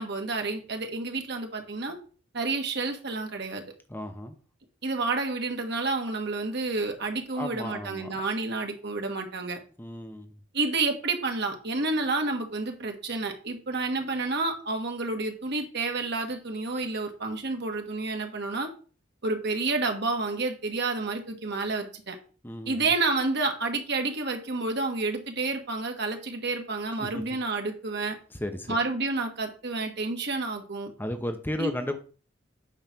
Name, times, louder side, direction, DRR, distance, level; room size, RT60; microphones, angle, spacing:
voice 1, 0.0-2.0 2.3-3.6 4.8-9.6 10.5-18.7 19.2-22.2 22.7-28.2 28.7-30.9 31.6-31.7, right 3 dB, 60° right, 1.4 m, -29 dB
voice 2, 3.9-4.3 7.3-8.1 9.8-10.4 22.4-22.9 27.0-27.2 28.3-28.8 31.0-32.0, left 1 dB, 10° left, 0.7 m, -34 dB
8.8 x 3.2 x 5.9 m
head